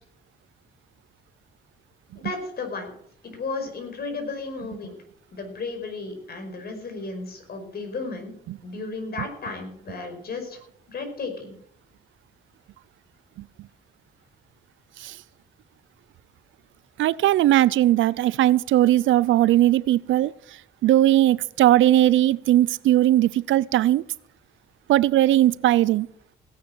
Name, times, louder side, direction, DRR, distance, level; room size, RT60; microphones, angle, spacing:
voice 1, 2.2-2.9 3.2-5.0 5.3-8.3 8.6-10.6 10.9-11.5, left 3 dB, 50° left, 5 dB, 5.2 m, -34 dB
voice 2, 17.0-20.3 20.8-24.0 24.9-26.1, right 14 dB, 75° right, 21 dB, 0.6 m, -19 dB
17.0 x 9.7 x 6.3 m, 0.66 s
cardioid pair, 90°, 20 cm